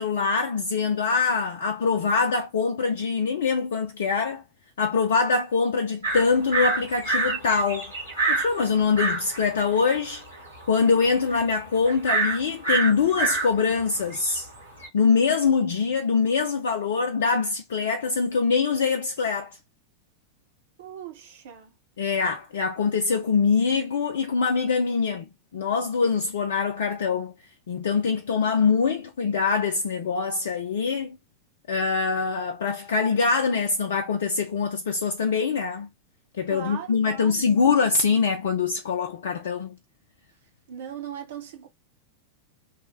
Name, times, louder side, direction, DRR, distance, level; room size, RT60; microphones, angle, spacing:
voice 1, 0.0-4.4 4.8-7.9 8.3-10.2 10.7-14.5 14.9-19.6 22.0-25.3 25.5-27.3 27.7-31.2 31.7-35.9 36.4-39.8, left 5 dB, 60° left, 0.4 m, -24 dB
sound 1, 6.0-14.9, right 3 dB, 85° right, 1.7 m, -28 dB
voice 2, 20.8-21.7 36.5-37.5 40.7-41.7, right 9 dB, 60° right, 0.8 m, -38 dB
3.0 x 2.1 x 3.1 m
figure-of-eight pair, 90°, 0 cm